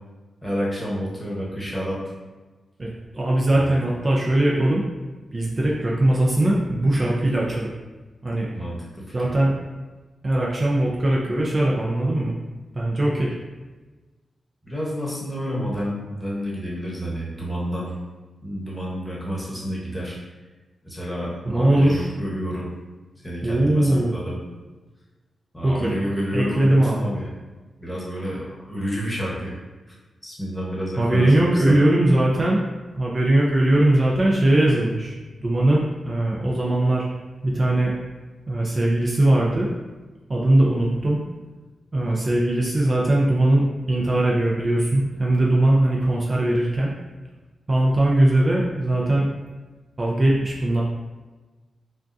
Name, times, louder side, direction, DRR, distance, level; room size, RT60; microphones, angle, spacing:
voice 1, 0.4-2.0 3.5-3.8 8.5-9.3 14.6-17.9 18.4-20.2 20.8-22.7 23.2-24.4 25.5-27.3 27.8-29.5 29.9-30.0 30.2-31.8, equal, 10° left, -5 dB, 1.1 m, -29 dB
voice 2, 2.8-4.8 5.3-7.7 8.2-8.5 9.1-9.5 10.2-12.3 12.7-13.3 15.6-15.7 21.5-22.1 23.4-24.2 25.6-25.9 26.3-27.1 31.0-32.6 32.9-35.1 35.4-37.0 37.4-37.9 38.5-39.7 40.3-41.2 41.9-46.9 47.7-49.3 50.0-50.8, right 1 dB, 40° right, -4 dB, 0.5 m, -20 dB
3.5 x 2.4 x 2.6 m, 1.3 s
cardioid pair, 60°, 0 cm